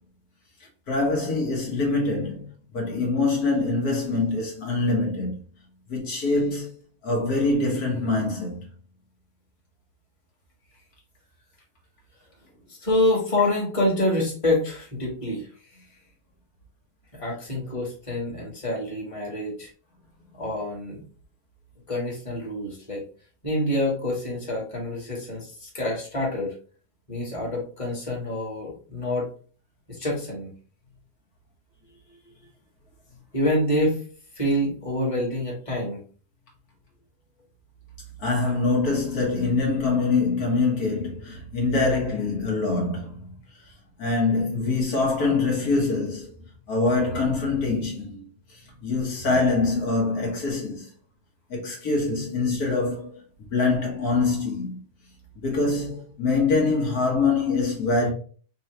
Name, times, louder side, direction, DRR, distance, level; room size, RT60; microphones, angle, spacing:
voice 1, 0.9-5.4 5.9-6.7 7.0-8.7 38.2-43.3 44.0-46.3 46.7-50.9 51.5-53.2 53.5-54.8 55.4-58.1, left 3 dB, 70° left, 1.7 m, -24 dB
voice 2, 12.7-15.5 17.1-19.7 20.3-21.0 21.9-23.0 23.4-26.5 27.1-29.3 29.9-30.5 33.3-34.0 34.3-36.0, left 1 dB, 20° left, 1.7 m, -26 dB
4.6 x 3.0 x 3.2 m
omnidirectional pair, 1.7 m